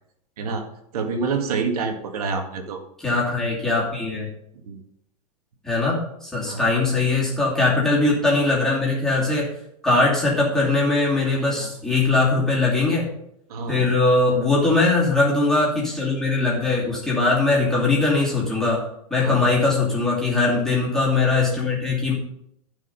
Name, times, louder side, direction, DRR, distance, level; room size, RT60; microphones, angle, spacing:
voice 1, 0.9-2.8 4.6-4.8 6.5-6.6 11.4-11.7 13.5-13.9 19.2-19.4, right 4 dB, 70° right, 4 dB, 2.0 m, -27 dB
voice 2, 3.0-4.3 5.6-9.5 9.8-13.0 13.7-18.8 19.1-22.1, left 3 dB, 5° left, -6 dB, 2.7 m, -21 dB
14.5 x 5.1 x 5.5 m, 0.76 s
supercardioid pair, 165°, 20 cm